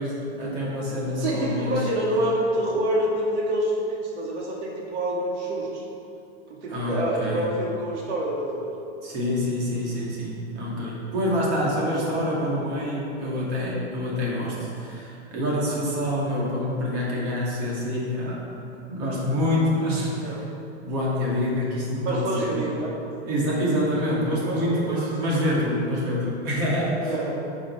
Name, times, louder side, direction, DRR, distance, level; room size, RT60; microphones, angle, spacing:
voice 1, 0.0-1.8 6.7-7.4 9.0-18.4 18.9-20.4 20.8-22.6 23.3-27.1, left 1 dB, 35° right, -6 dB, 2.7 m, -26 dB
voice 2, 1.2-5.8 6.6-8.8 11.7-12.0 20.1-20.4 22.0-23.0 24.4-25.4 27.0-27.3, right 1 dB, 80° right, -3 dB, 2.4 m, -27 dB
10.5 x 6.2 x 6.1 m, 2.7 s
supercardioid pair, 175°, 34 cm